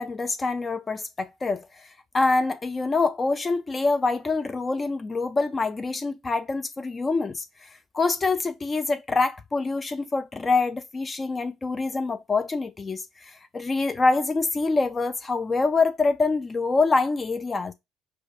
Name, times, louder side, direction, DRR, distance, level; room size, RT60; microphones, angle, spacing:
voice 1, 0.0-17.7, left 3 dB, 30° left, 0.3 m, -25 dB
4.5 x 2.3 x 2.4 m
hypercardioid pair, 70°, 0 cm